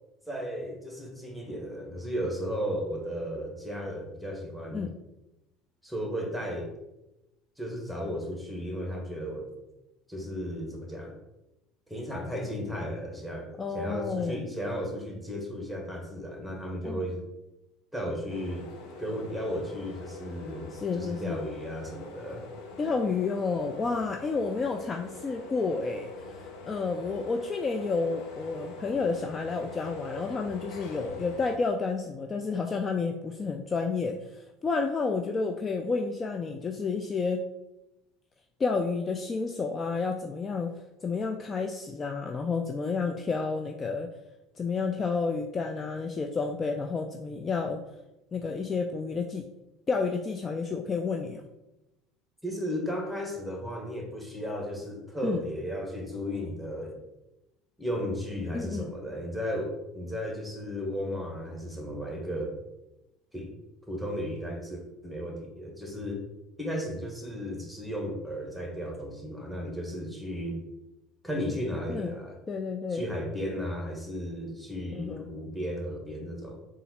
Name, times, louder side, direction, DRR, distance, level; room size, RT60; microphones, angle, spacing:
voice 1, 0.3-4.9 5.8-6.7 7.6-9.5 10.1-11.1 11.9-13.5 13.7-17.2 17.9-18.7 19.0-22.5 52.4-57.0 57.8-62.5 63.3-63.5 63.9-66.2 66.6-70.6 71.2-72.4 72.9-76.6, equal, ahead, 1 dB, 1.2 m, -34 dB
voice 2, 13.6-14.5 16.8-17.0 20.7-21.4 22.8-37.4 38.6-40.7 41.0-44.1 44.6-47.8 48.3-49.5 49.9-51.4 55.2-55.4 58.5-58.9 71.9-72.1 72.5-73.0 74.9-75.3, left 4 dB, 30° left, 4 dB, 0.4 m, -30 dB
sound 1, 18.3-31.6, left 3 dB, 65° left, 0.7 m, -44 dB
3.9 x 2.5 x 4.2 m, 0.94 s
hypercardioid pair, 75°, 0 cm